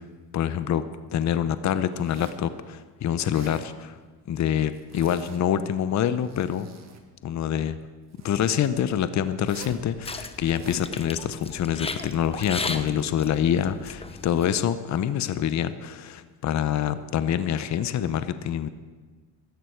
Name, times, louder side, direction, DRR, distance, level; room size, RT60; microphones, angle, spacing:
voice 1, 0.3-0.8 1.1-4.0 4.3-6.7 7.2-7.8 8.2-18.7, left 9 dB, 45° left, 13 dB, 0.8 m, -26 dB
Zipper (clothing), 1.9-2.5 3.1-3.7 4.7-5.6 6.0-7.0 8.1-8.7 9.4-9.8 10.3-10.9, right 5 dB, 40° right, 2.1 m, -46 dB
sound 1, 9.8-14.6, left 3 dB, 15° left, 0.9 m, -36 dB
16.5 x 13.0 x 4.6 m, 1.4 s
supercardioid pair, 95°, 41 cm